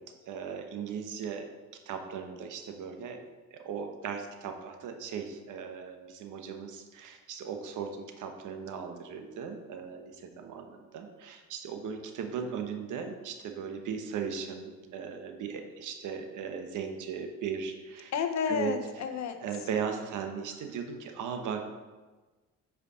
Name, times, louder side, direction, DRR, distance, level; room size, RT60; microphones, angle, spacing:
voice 1, 0.3-1.5 1.9-3.2 3.5-18.1 18.5-18.7 19.4-21.6, right 6 dB, 80° right, 5 dB, 1.1 m, -37 dB
voice 2, 18.1-19.7, left 7 dB, 65° left, 6 dB, 1.0 m, -31 dB
8.3 x 5.0 x 5.0 m, 1.3 s
cardioid pair, 90°, 30 cm